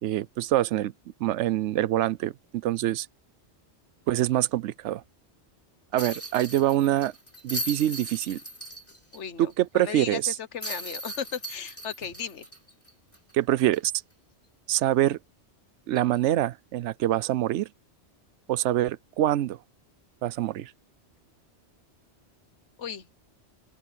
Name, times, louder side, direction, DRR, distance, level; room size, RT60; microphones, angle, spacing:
voice 1, 0.0-0.9 1.2-3.1 4.1-5.0 5.9-7.1 7.4-8.4 9.4-10.3 13.3-13.9 14.7-15.2 15.9-17.7 18.5-19.6 20.2-20.7, right 13 dB, 85° right, 0.9 m, -25 dB
sound 1, 6.0-9.2 9.5-9.6 10.6-13.3 13.7-13.8 15.9-16.1, equal, 10° left, 3.7 m, -38 dB
voice 2, 9.1-12.5 22.8-23.1, left 7 dB, 85° left, 1.4 m, -36 dB
open air
omnidirectional pair, 1.2 m